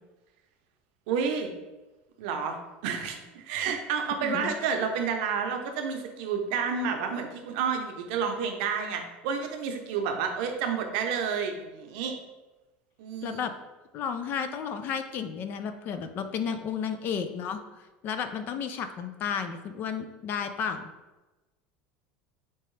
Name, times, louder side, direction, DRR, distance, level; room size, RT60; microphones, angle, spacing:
voice 1, 1.1-1.5 2.2-2.6 2.8-12.1 13.0-13.4, right 6 dB, 70° right, 5 dB, 0.6 m, -30 dB
voice 2, 4.2-4.6 13.2-13.5 13.9-17.6 18.0-20.9, left 7 dB, 40° left, 8 dB, 0.3 m, -32 dB
4.5 x 2.9 x 3.1 m, 1.1 s
supercardioid pair, 145°, 5 cm